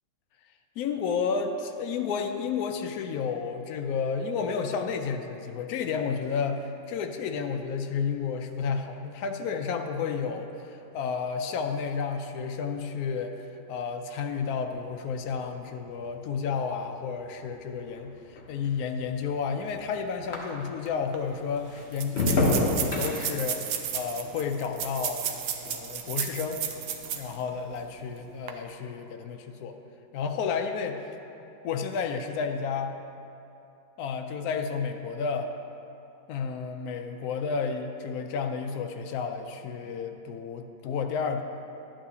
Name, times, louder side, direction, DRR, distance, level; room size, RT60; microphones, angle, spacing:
voice 1, 0.8-25.2 25.6-26.6 27.0-29.8 30.1-31.0 31.6-33.0 34.0-35.5 36.3-41.4, left 6 dB, 80° left, 5 dB, 0.8 m, -31 dB
sound 1, 14.2-21.0 21.3-25.9 26.2-26.7, left 2 dB, 45° left, 0.9 m, -33 dB
sound 2, 20.9-21.0 21.1-21.2 21.9-27.4 27.8-27.9 28.3-28.5, right 9 dB, 80° right, 1.4 m, -33 dB
11.5 x 8.7 x 2.8 m, 2.8 s
omnidirectional pair, 2.1 m